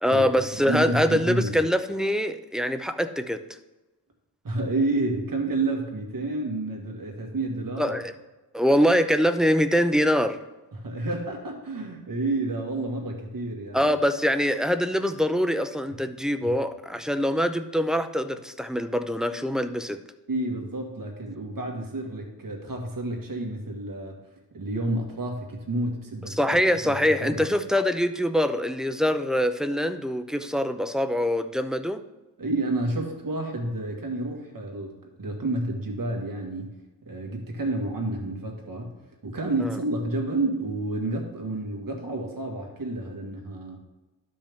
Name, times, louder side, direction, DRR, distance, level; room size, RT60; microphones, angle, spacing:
voice 1, 0.0-3.4 7.8-8.1 8.5-10.4 13.7-20.0 26.3-32.0 39.6-39.8, equal, ahead, 8 dB, 0.4 m, -24 dB
voice 2, 0.7-1.6 4.4-7.9 10.8-13.9 16.4-16.6 20.3-24.2 24.5-26.4 26.8-26.9 27.2-27.5 32.4-36.7 37.1-38.9 39.2-43.8, right 2 dB, 50° right, 1 dB, 1.8 m, -30 dB
12.0 x 5.2 x 3.6 m, 1.1 s
wide cardioid pair, 85°, 42 cm